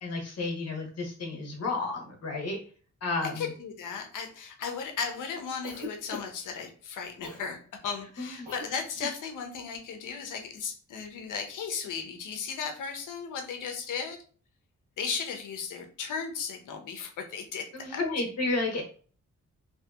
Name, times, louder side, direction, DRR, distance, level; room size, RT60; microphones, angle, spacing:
voice 1, 0.0-2.6 3.0-3.5 8.2-8.5 17.7-18.8, left 3 dB, 55° left, 1 dB, 1.0 m, -32 dB
voice 2, 3.4-14.2 15.0-18.0, left 6 dB, 85° left, 4 dB, 0.6 m, -36 dB
Cough, 5.6-6.5 7.2-7.5 8.4-8.7 8.9-9.2, left 1 dB, 30° right, 1.3 m, -40 dB
2.7 x 2.7 x 2.3 m, 0.42 s
wide cardioid pair, 120°, 31 cm